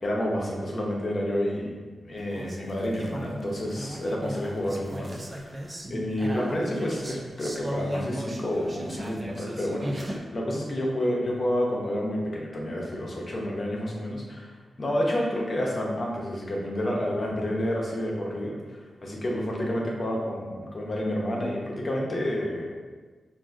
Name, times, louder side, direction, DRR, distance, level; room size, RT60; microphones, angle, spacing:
voice 1, 0.0-1.7 2.0-5.5 5.9-14.5 14.8-22.7, left 1 dB, 40° left, -2 dB, 0.7 m, -29 dB
sound 1, 2.2-10.2, equal, 30° right, 0.3 m, -37 dB
3.6 x 2.5 x 2.4 m, 1.4 s
cardioid pair, 85°, 0 cm